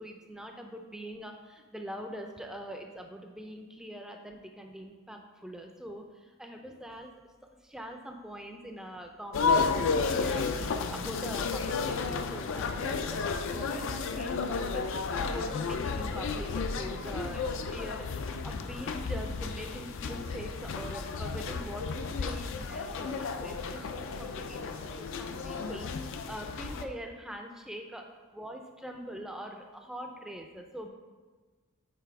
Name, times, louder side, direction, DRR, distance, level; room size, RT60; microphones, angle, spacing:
voice 1, 0.0-7.1 7.6-10.7 10.9-30.9, equal, 5° right, 3 dB, 0.4 m, -43 dB
sound 1, 9.3-26.9, left 4 dB, 60° left, 0.4 m, -32 dB
6.8 x 3.2 x 4.6 m, 1.4 s
head